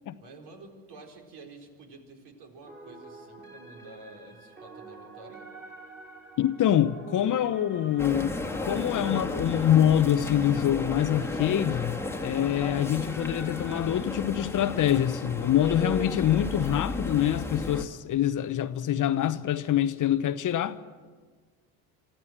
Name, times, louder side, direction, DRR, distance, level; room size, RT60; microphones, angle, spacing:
voice 1, 0.2-5.5, right 3 dB, 60° right, 4.4 m, -49 dB
sound 1, 2.7-14.0, right 3 dB, 25° right, 5.0 m, -47 dB
voice 2, 6.4-20.8, left 11 dB, 40° left, 1.0 m, -25 dB
sound 2, 8.0-17.8, left 2 dB, 5° left, 2.0 m, -33 dB
24.5 x 14.5 x 7.4 m
hypercardioid pair, 70°, 46 cm